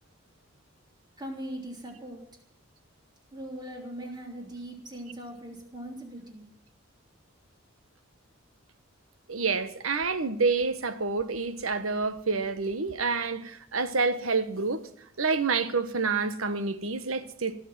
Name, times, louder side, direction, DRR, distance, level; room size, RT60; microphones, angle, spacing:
voice 1, 1.2-2.3 3.3-6.5, right 1 dB, 20° right, 3.5 m, -40 dB
voice 2, 9.3-14.8 15.2-17.6, right 4 dB, 80° right, 1.3 m, -28 dB
18.0 x 7.3 x 9.6 m
head